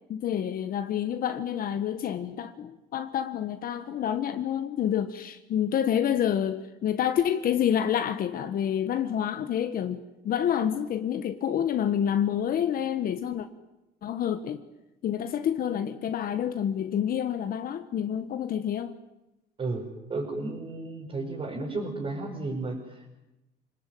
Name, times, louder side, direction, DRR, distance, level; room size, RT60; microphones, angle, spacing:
voice 1, 0.1-13.5 14.0-14.6 15.0-18.9, left 9 dB, 60° left, 1.4 m, -28 dB
voice 2, 20.1-23.1, right 3 dB, 35° right, 5.6 m, -33 dB
26.0 x 19.5 x 9.3 m
cardioid pair, 110°, 17 cm